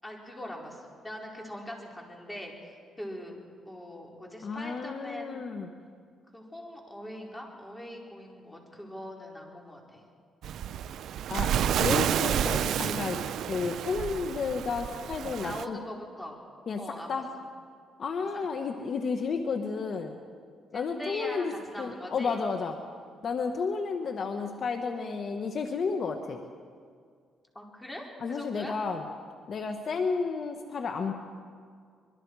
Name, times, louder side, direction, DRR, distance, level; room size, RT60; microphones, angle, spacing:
voice 1, 0.0-3.4 3.6-5.4 6.3-10.0 15.4-16.4 16.8-17.1 18.6-18.7 20.7-22.4 27.5-28.7, left 1 dB, 10° left, -1 dB, 4.7 m, -42 dB
voice 2, 4.4-5.7 11.3-13.2 13.5-15.8 16.7-16.8 17.1-17.3 18.0-20.2 20.7-21.5 21.8-22.8 23.2-26.4 28.2-29.1 29.5-31.1, left 5 dB, 55° left, 5 dB, 1.3 m, -32 dB
Waves surf, 10.4-15.6, right 9 dB, 75° right, 0.6 m, -30 dB
25.0 x 22.5 x 4.9 m, 2.1 s
cardioid pair, 90°, 0 cm